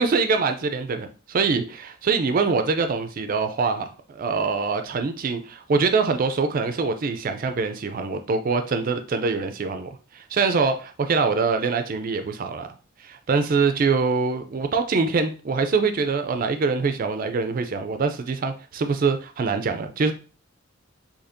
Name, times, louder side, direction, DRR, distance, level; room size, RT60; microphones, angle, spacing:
voice 1, 0.0-12.7 13.0-20.1, right 4 dB, 45° right, 8 dB, 0.4 m, -24 dB
4.2 x 2.8 x 2.6 m, 0.36 s
head